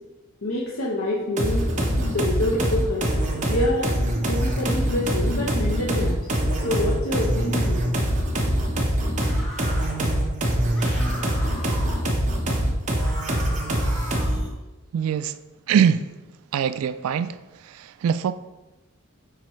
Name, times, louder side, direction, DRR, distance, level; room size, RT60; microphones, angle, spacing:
voice 1, 0.4-3.1 3.5-3.9 4.2-6.4 6.6-7.9, left 1 dB, 75° left, -3 dB, 0.9 m, -27 dB
sound 1, 1.4-14.5, right 1 dB, 35° right, 1.0 m, -24 dB
sound 2, 9.2-10.0 10.7-12.0 12.9-14.4, left 1 dB, 5° left, 1.7 m, -38 dB
voice 2, 14.9-15.4 15.7-16.1 16.5-17.4 17.6-18.3, right 8 dB, 80° right, 14 dB, 0.3 m, -22 dB
9.7 x 4.2 x 3.1 m, 1.1 s
head